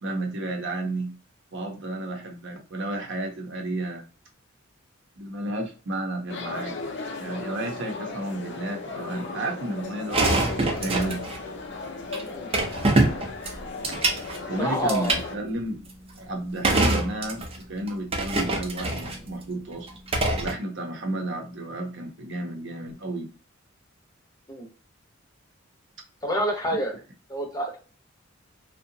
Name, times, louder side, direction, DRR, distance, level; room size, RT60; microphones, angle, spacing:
voice 1, 0.0-1.1 1.5-4.0 5.2-6.8 7.2-11.3 14.5-15.8 16.2-19.9 20.4-23.3 26.7-26.8, right 1 dB, 65° right, 2 dB, 0.7 m, -32 dB
sound 1, 6.3-15.4, left 3 dB, 60° left, 0.5 m, -36 dB
sound 2, 10.1-11.4 12.1-12.2 12.5-14.4 14.9-15.2 16.6-17.6 17.9-19.2 19.9-20.5, right 2 dB, 30° right, 0.5 m, -24 dB
voice 2, 14.4-15.2 16.7-16.8 24.5-24.7 26.2-26.9 27.3-27.8, equal, 20° left, 1 dB, 0.7 m, -28 dB
2.7 x 2.1 x 2.6 m, 0.35 s
head